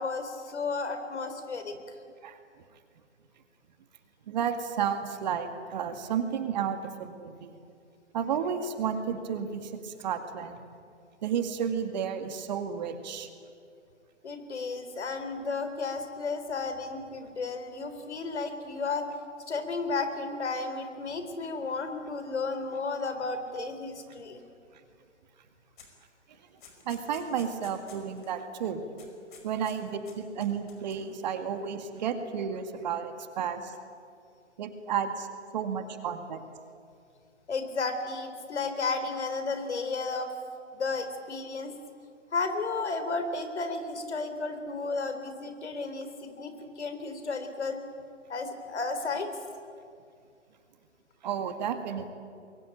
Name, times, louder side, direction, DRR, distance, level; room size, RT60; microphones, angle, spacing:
voice 1, 0.0-1.7 14.2-19.1 19.5-24.4 37.5-40.3 40.7-41.7 42.3-47.8 48.3-49.3, left 4 dB, 60° left, 8 dB, 4.1 m, -33 dB
voice 2, 4.3-7.6 8.1-10.6 11.2-13.3 26.9-28.8 29.4-29.9 30.1-33.7 34.6-35.3 35.5-36.4 51.2-52.1, right 7 dB, 35° right, 7 dB, 2.1 m, -32 dB
sound 1, 25.8-26.0 26.3-28.3 28.6-28.7 29.0-29.8 30.1-31.1, left 6 dB, 40° left, 5.4 m, -52 dB
25.0 x 22.5 x 9.2 m, 2.3 s
figure-of-eight pair, 140°, 37 cm